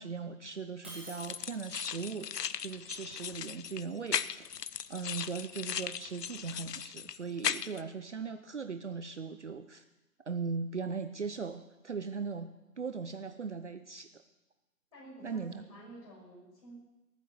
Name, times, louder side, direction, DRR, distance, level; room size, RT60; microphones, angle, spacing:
voice 1, 0.0-2.3 2.6-4.4 4.9-9.8 10.3-14.2 15.2-15.6, right 5 dB, 45° right, 10 dB, 0.7 m, -39 dB
Shatter, 0.8-1.9, right 1 dB, 5° right, 0.8 m, -48 dB
sound 1, 1.2-7.8, left 8 dB, 75° left, 0.7 m, -37 dB
voice 2, 14.9-16.8, right 2 dB, 20° left, -4 dB, 6.3 m, -50 dB
18.5 x 9.4 x 7.0 m, 1.0 s
figure-of-eight pair, 160°, 49 cm